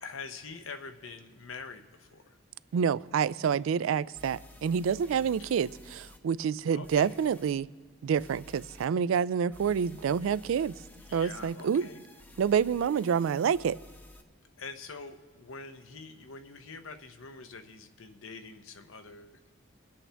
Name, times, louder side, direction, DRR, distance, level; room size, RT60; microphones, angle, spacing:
voice 1, 0.0-2.4 5.2-5.5 6.7-7.2 11.1-12.0 14.6-19.5, left 4 dB, 85° left, 0.8 m, -45 dB
voice 2, 2.7-7.7 8.0-10.7 11.1-11.9 12.4-13.8, right 7 dB, 85° right, 0.3 m, -28 dB
sound 1, 4.1-6.2 6.8-7.5 8.2-8.9 9.5-14.2, left 1 dB, 10° left, 0.4 m, -53 dB
23.5 x 8.4 x 3.4 m
head